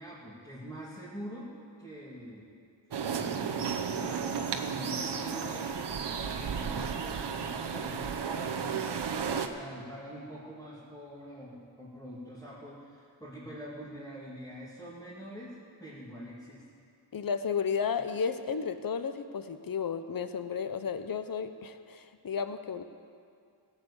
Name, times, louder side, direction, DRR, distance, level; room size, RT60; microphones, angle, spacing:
voice 1, 0.0-1.5 1.8-2.6 2.9-5.7 6.3-16.6, equal, 10° left, -10 dB, 2.6 m, -44 dB
sound 1, 2.9-9.5, right 6 dB, 60° right, 0.9 m, -33 dB
voice 2, 17.1-22.8, left 6 dB, 50° left, 10 dB, 0.8 m, -33 dB
17.5 x 7.5 x 8.3 m, 2.3 s
wide cardioid pair, 120°, 46 cm